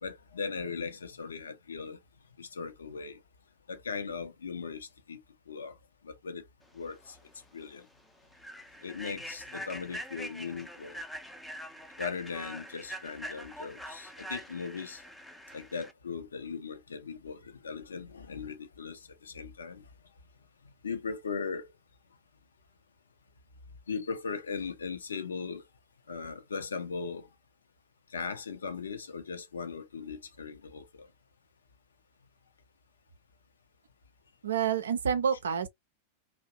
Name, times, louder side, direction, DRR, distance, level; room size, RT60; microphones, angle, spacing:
voice 1, 0.0-2.0 2.4-3.2 3.7-5.8 6.0-6.4 6.7-7.2 7.5-7.9 8.8-11.0 12.0-15.0 15.5-19.8 20.8-21.7 23.9-25.6 26.1-27.3 28.1-31.1, left 5 dB, 70° left, 0.5 m, -38 dB
Human voice / Train, 7.0-7.2 7.6-7.8 8.3-15.9, equal, 5° left, 0.4 m, -44 dB
voice 2, 34.4-35.7, right 7 dB, 65° right, 0.5 m, -28 dB
2.7 x 2.1 x 2.3 m
figure-of-eight pair, 90°, 0 cm